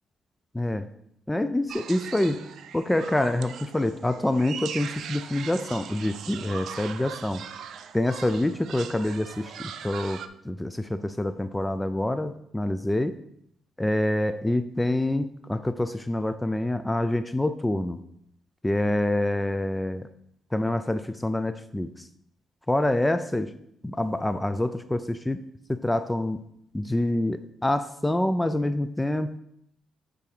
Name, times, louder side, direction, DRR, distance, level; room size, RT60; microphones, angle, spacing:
voice 1, 0.5-0.9 1.3-7.4 7.9-13.2 13.8-18.0 18.6-20.1 20.5-22.1 22.7-23.6 23.8-26.4 26.7-29.4, left 1 dB, 10° left, 11 dB, 0.3 m, -26 dB
sound 1, 1.7-10.3, right 8 dB, 70° right, 0.5 m, -40 dB
8.4 x 3.9 x 4.8 m, 0.75 s
cardioid pair, 90°, 0 cm